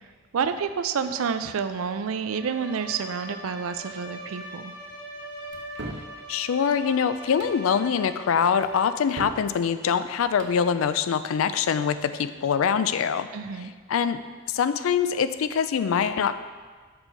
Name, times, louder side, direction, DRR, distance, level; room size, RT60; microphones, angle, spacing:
voice 1, 0.3-4.7 13.3-13.7, right 6 dB, 80° right, 10 dB, 0.4 m, -29 dB
Bowed string instrument, 2.1-9.2, right 1 dB, 15° left, 1.7 m, -42 dB
sound 1, 5.5-6.1 7.2-7.6 8.6-9.5 10.2-10.6, right 2 dB, 60° right, 0.8 m, -39 dB
voice 2, 6.3-13.3 13.6-14.2 14.5-16.3, left 7 dB, 70° left, 12 dB, 0.4 m, -24 dB
6.8 x 5.5 x 4.5 m, 1.5 s
head